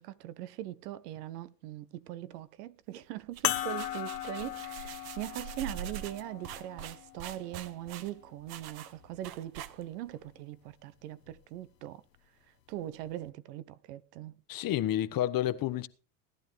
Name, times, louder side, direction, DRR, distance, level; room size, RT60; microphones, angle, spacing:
voice 1, 0.0-12.0 12.7-14.4, right 13 dB, 70° right, 1.1 m, -41 dB
sound 1, 3.2-10.1, right 9 dB, 50° right, 1.4 m, -44 dB
sound 2, 3.4-8.2 9.0-9.1 11.3-11.4, left 13 dB, 85° left, 1.2 m, -38 dB
voice 2, 14.5-15.9, left 12 dB, 45° left, 1.3 m, -30 dB
18.5 x 12.0 x 3.4 m
hypercardioid pair, 85°, 48 cm